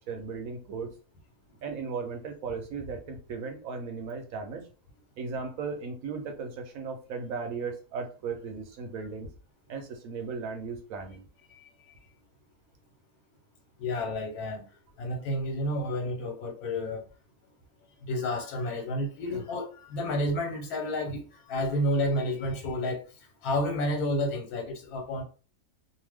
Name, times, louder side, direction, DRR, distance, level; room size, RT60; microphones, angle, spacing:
voice 1, 0.1-0.9 1.6-4.7 5.2-9.3 9.7-11.2 19.3-19.4, right 5 dB, 75° right, 1.0 m, -36 dB
voice 2, 11.6-12.0 13.8-14.7 15.0-17.1 18.0-23.0 23.4-25.2, left 1 dB, 85° left, 1.2 m, -30 dB
2.7 x 2.1 x 3.3 m
omnidirectional pair, 1.5 m